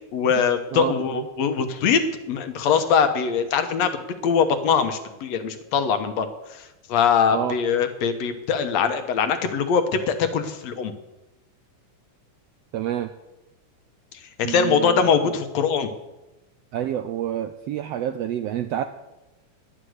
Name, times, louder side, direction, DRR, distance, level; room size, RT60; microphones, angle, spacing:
voice 1, 0.1-2.0 2.3-3.9 4.2-10.9 14.4-15.9, left 6 dB, 65° left, 8 dB, 2.2 m, -22 dB
voice 2, 0.7-1.3 7.3-7.6 12.7-13.1 14.4-15.1 16.7-18.8, right 11 dB, 80° right, 9 dB, 1.4 m, -28 dB
11.5 x 11.0 x 7.9 m, 1.0 s
omnidirectional pair, 3.6 m